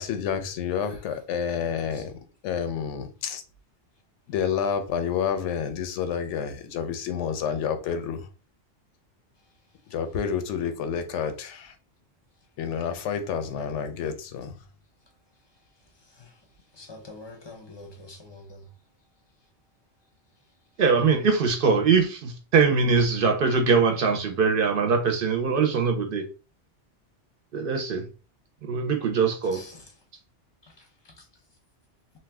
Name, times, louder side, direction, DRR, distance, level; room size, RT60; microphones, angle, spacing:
voice 1, 0.0-2.1 2.4-3.4 4.3-8.3 9.9-11.7 12.6-14.5, left 7 dB, 90° left, 0.9 m, -29 dB
voice 2, 1.6-2.0 14.0-14.1 16.1-16.3 16.7-18.7 29.5-29.9 30.6-31.2, left 2 dB, 30° left, 0.5 m, -46 dB
voice 3, 20.8-26.2 27.5-28.0 28.6-29.6, right 5 dB, 60° right, 0.7 m, -22 dB
2.6 x 2.2 x 3.3 m
omnidirectional pair, 1.2 m